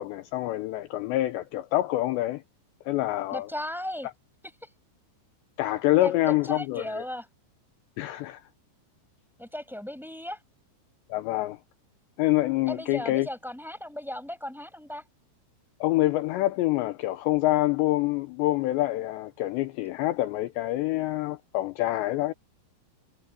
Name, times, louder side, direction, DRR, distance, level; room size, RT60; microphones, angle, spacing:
voice 1, 0.0-2.4 2.9-3.5 5.6-7.0 8.0-8.4 11.1-11.6 12.2-13.3 15.8-22.3, left 16 dB, 80° left, 2.8 m, -26 dB
voice 2, 3.3-4.1 4.6-4.7 6.0-7.3 9.4-10.4 12.7-15.0, left 1 dB, ahead, 6.9 m, -36 dB
omnidirectional pair, 5.6 m